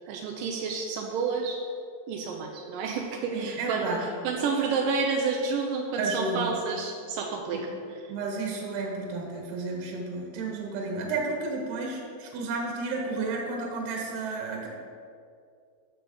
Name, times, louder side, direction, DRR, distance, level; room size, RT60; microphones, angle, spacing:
voice 1, 0.1-1.6 2.1-7.7, right 4 dB, 85° right, 1 dB, 1.9 m, -30 dB
voice 2, 3.3-4.0 6.0-6.5 7.5-7.6 8.1-14.7, right 3 dB, 70° right, 0 dB, 3.1 m, -32 dB
13.5 x 7.1 x 3.9 m, 2.3 s
omnidirectional pair, 4.9 m